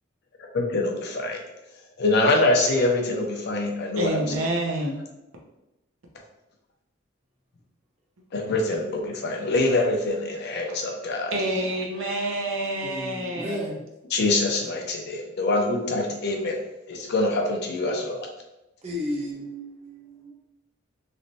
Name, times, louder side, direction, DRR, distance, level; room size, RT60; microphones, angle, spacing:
voice 1, 0.5-1.4 2.0-4.1 8.3-11.3 14.1-16.6 16.9-18.2, left 2 dB, 55° left, 2 dB, 0.6 m, -24 dB
voice 2, 4.0-5.0 10.7-10.8 11.3-13.8, right 1 dB, 85° right, -1 dB, 0.8 m, -28 dB
voice 3, 12.8-13.8 18.8-20.3, equal, 35° right, -1 dB, 0.8 m, -33 dB
3.2 x 3.0 x 2.7 m, 0.96 s
head